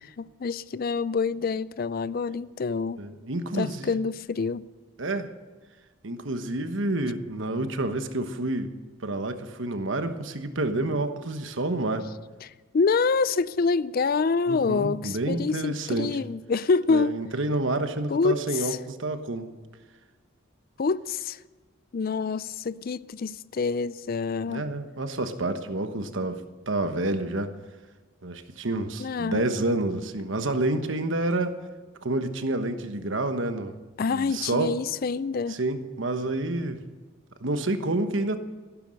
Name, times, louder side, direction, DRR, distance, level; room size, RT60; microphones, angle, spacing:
voice 1, 0.2-3.0 3.5-4.6 12.4-17.2 18.1-18.8 20.8-21.4 21.9-24.6 29.0-29.4 34.0-35.6, left 4 dB, 45° left, 0.4 m, -26 dB
voice 2, 3.0-3.9 5.0-5.3 6.0-8.7 9.0-12.1 14.5-16.2 16.9-19.5 24.5-27.5 28.2-31.6 32.0-33.7 34.1-34.7 35.5-36.8 37.4-38.4, right 2 dB, 65° right, 1.2 m, -29 dB
15.0 x 12.0 x 6.4 m
head